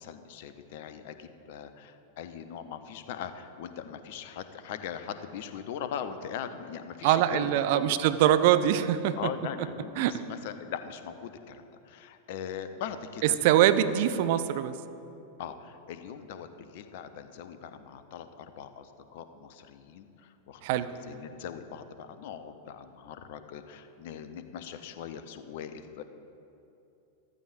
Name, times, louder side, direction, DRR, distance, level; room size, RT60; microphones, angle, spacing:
voice 1, 0.0-7.9 8.2-8.5 9.2-13.4 15.4-26.0, left 8 dB, 50° left, 10 dB, 0.6 m, -40 dB
voice 2, 7.0-9.2 10.0-10.2 13.4-14.7 20.6-20.9, right 11 dB, 50° right, 12 dB, 0.5 m, -23 dB
14.5 x 13.0 x 2.6 m, 2.7 s
figure-of-eight pair, 90°, 0 cm